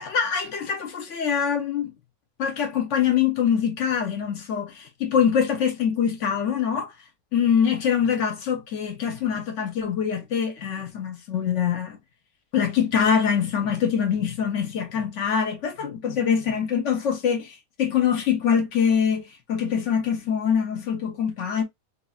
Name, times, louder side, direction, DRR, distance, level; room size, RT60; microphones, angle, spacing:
voice 1, 0.0-1.9 2.4-6.9 7.3-12.0 12.5-21.6, left 7 dB, 65° left, 0.9 m, -24 dB
3.1 x 2.6 x 2.3 m
omnidirectional pair, 1.5 m